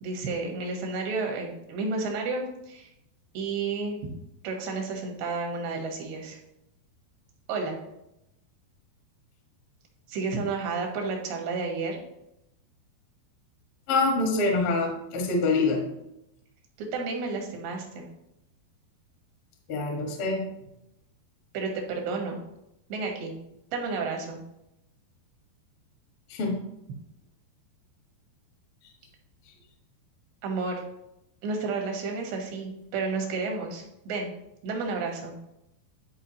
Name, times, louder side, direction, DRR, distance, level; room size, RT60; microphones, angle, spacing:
voice 1, 0.0-2.9 3.4-4.0 4.4-6.4 7.5-7.8 10.1-12.0 16.8-18.1 21.5-22.4 22.9-23.3 23.7-24.4 30.4-30.8 31.4-34.3 34.6-35.4, right 4 dB, 85° right, 2 dB, 3.6 m, -31 dB
voice 2, 13.9-15.8 19.7-20.4 26.3-26.5, left 3 dB, 60° left, 0 dB, 1.4 m, -25 dB
11.5 x 4.7 x 2.9 m, 0.84 s
omnidirectional pair, 4.9 m